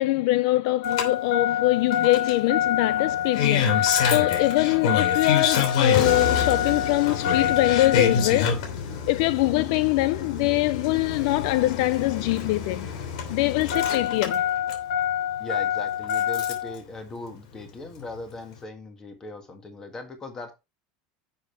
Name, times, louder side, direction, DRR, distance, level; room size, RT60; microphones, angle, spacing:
voice 1, 0.0-8.6 9.1-12.9 13.3-14.4, left 18 dB, 60° left, 0.4 m, -23 dB
Engine starting, 0.8-16.8 18.0-18.1, left 8 dB, 90° left, 3.0 m, -25 dB
voice 2, 15.4-20.5, left 2 dB, 15° left, 1.8 m, -39 dB
10.5 x 7.1 x 3.3 m
supercardioid pair, 175°, 4 cm